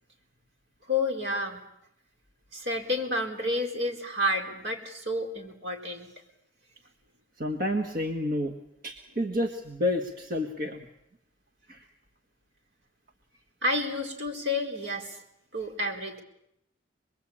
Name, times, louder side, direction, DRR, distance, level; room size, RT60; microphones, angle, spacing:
voice 1, 0.9-1.6 2.5-6.1 13.6-15.2 15.5-16.2, left 1 dB, 65° right, 3 dB, 4.5 m, -30 dB
voice 2, 7.4-8.5 8.8-10.8 11.7-11.8, left 1 dB, 45° right, 4 dB, 1.6 m, -30 dB
26.5 x 22.0 x 8.7 m, 0.82 s
head